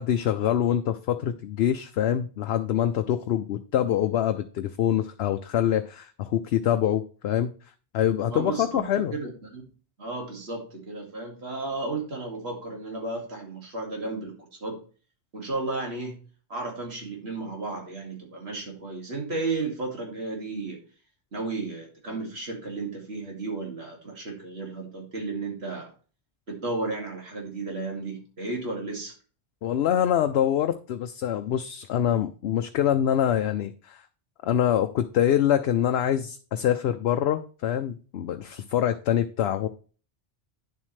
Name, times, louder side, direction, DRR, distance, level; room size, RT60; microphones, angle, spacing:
voice 1, 0.0-7.5 7.9-9.1 29.6-34.0 34.4-39.7, left 10 dB, 70° left, 7 dB, 0.8 m, -25 dB
voice 2, 8.3-9.7 10.0-14.8 15.3-16.2 16.5-20.8 21.3-25.9 26.5-29.1, right 3 dB, 70° right, 0 dB, 2.4 m, -33 dB
9.9 x 7.4 x 3.2 m, 0.38 s
omnidirectional pair, 1.1 m